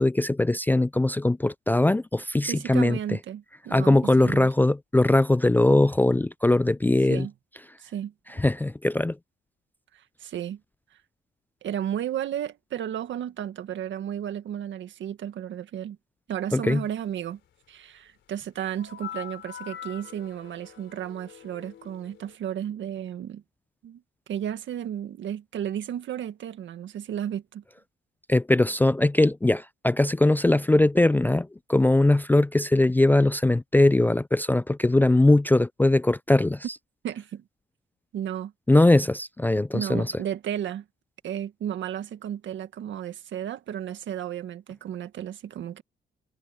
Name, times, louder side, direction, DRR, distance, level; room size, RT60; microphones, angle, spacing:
voice 1, 0.0-3.0 3.7-7.3 8.4-9.2 16.5-16.8 28.3-36.6 38.7-40.1, left 2 dB, 10° left, 0.4 m, -21 dB
voice 2, 2.5-4.5 7.1-7.3 7.8-8.1 9.9-10.6 11.6-16.0 16.3-17.4 17.7-23.4 23.8-24.0 24.3-27.6 37.0-37.4 38.1-38.5 39.7-40.8 41.2-45.8, right 10 dB, 70° right, 1.9 m, -33 dB
sound 1, 18.8-22.4, left 10 dB, 70° left, 3.8 m, -43 dB
cardioid pair, 90°, 20 cm